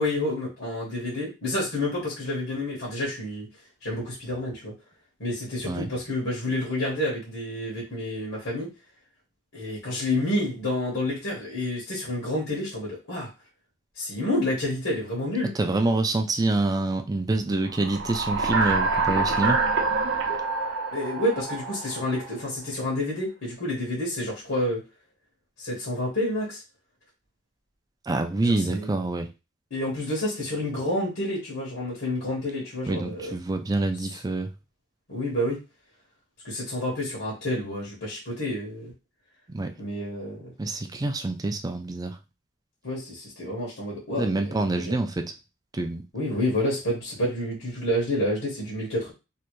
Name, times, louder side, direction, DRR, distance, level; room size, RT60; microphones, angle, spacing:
voice 1, 0.0-3.5 3.8-4.7 5.2-8.7 9.5-13.3 13.9-15.5 20.9-24.8 25.6-26.6 28.4-28.9 29.7-33.4 35.1-35.6 36.4-38.9 39.8-40.5 42.8-45.0 46.1-49.1, left 1 dB, 85° left, -5 dB, 1.5 m, -29 dB
voice 2, 15.6-19.6 28.1-29.3 32.9-34.5 39.5-39.7 40.6-42.2 44.2-45.3 45.7-46.0, right 2 dB, 20° right, 6 dB, 0.4 m, -26 dB
sound 1, 17.7-22.4, right 4 dB, 65° right, 0.7 m, -26 dB
3.2 x 2.5 x 3.1 m, 0.28 s
head